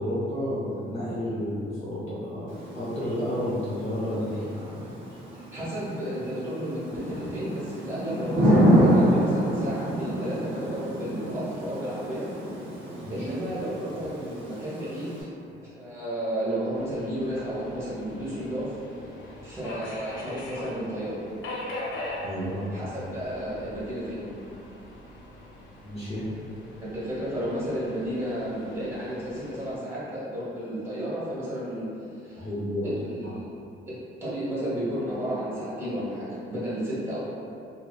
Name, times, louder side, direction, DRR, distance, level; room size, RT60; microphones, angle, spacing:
voice 1, 0.0-4.4 13.0-13.3 22.2-22.7 25.8-26.3 32.4-32.9 33.3-33.4, equal, 35° left, -10 dB, 0.6 m, -31 dB
Thunder / Rain, 2.5-15.2, equal, 75° right, 0.6 m, -27 dB
voice 2, 5.3-12.3 13.1-15.3 15.8-18.7 19.4-21.2 22.7-24.3 26.8-32.5 32.8-33.4 33.9-34.0 34.2-37.2, equal, 10° right, -10 dB, 1.0 m, -32 dB
Subway metro underground, 16.7-29.8, left 1 dB, 80° left, 0.5 m, -41 dB
2.7 x 2.0 x 2.2 m, 2.6 s
cardioid pair, 90°, 20 cm